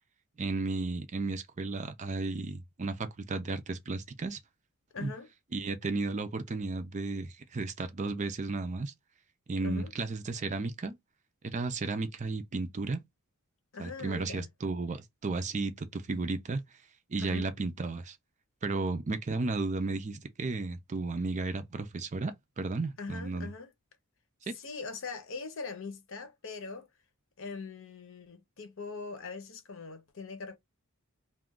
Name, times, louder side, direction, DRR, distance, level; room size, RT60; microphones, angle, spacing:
voice 1, 0.4-4.4 5.0-5.1 5.5-8.9 9.5-11.0 11.4-13.0 13.8-16.6 17.1-18.2 18.6-23.5 24.5-24.6, right 3 dB, 35° right, 0.4 m, -34 dB
voice 2, 4.9-5.3 9.6-9.9 13.7-14.5 17.2-17.5 23.0-23.7 24.4-26.9 27.4-30.6, left 4 dB, 60° left, 0.8 m, -41 dB
2.4 x 2.3 x 3.5 m
head